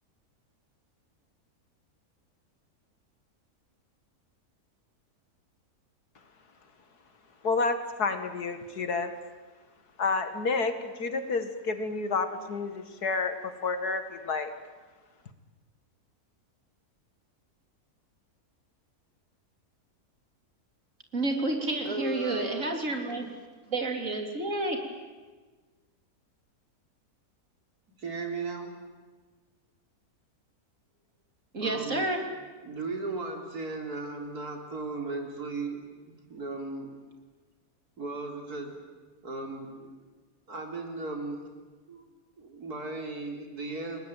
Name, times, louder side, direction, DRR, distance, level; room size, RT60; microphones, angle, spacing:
voice 1, 7.4-9.1 10.0-14.5, left 4 dB, 85° left, 8 dB, 2.4 m, -30 dB
voice 2, 21.1-23.3 23.7-24.8 31.5-32.2, right 2 dB, 55° right, 3 dB, 4.0 m, -30 dB
voice 3, 21.8-22.9 28.0-28.7 31.6-32.2 32.6-37.0 38.0-38.8 39.2-40.0 40.5-41.5 41.9-42.1 42.4-44.0, right 3 dB, 75° right, 2 dB, 4.4 m, -36 dB
30.0 x 20.0 x 9.2 m, 1.3 s
omnidirectional pair, 1.6 m